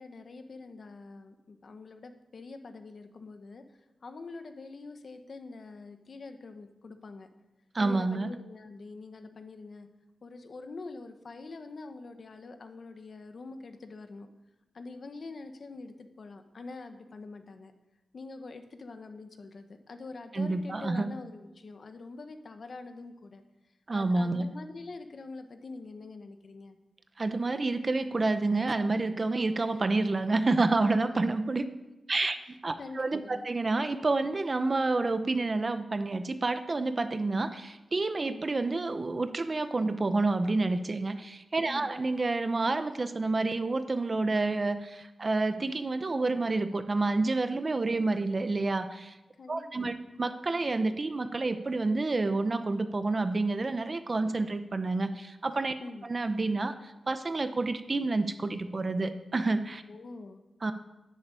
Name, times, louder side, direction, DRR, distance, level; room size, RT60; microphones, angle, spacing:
voice 1, 0.0-7.3 7.8-9.9 10.2-14.3 14.7-17.7 18.1-23.4 23.9-26.8 32.8-33.4 41.7-41.9 49.4-50.1 55.8-56.0 59.9-60.4, left 3 dB, 50° left, 7 dB, 1.3 m, -45 dB
voice 2, 7.7-8.3 20.3-21.1 23.9-24.5 27.2-31.6 32.1-32.4 32.6-49.2 49.5-55.7 56.1-59.8 60.6-60.7, right 3 dB, 35° right, 10 dB, 0.9 m, -29 dB
11.0 x 10.5 x 8.4 m, 1.0 s
wide cardioid pair, 135°, 0 cm